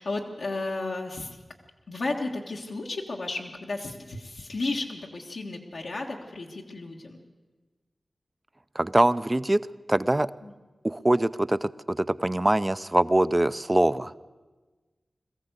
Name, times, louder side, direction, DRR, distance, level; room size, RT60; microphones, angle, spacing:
voice 1, 0.0-1.4 1.9-7.2 10.4-10.5, left 2 dB, 80° left, -2 dB, 1.6 m, -33 dB
voice 2, 8.7-9.6 9.9-10.3 10.8-14.1, right 1 dB, 25° right, 15 dB, 0.5 m, -23 dB
22.0 x 14.5 x 8.2 m, 1.3 s
wide cardioid pair, 65°, 0 cm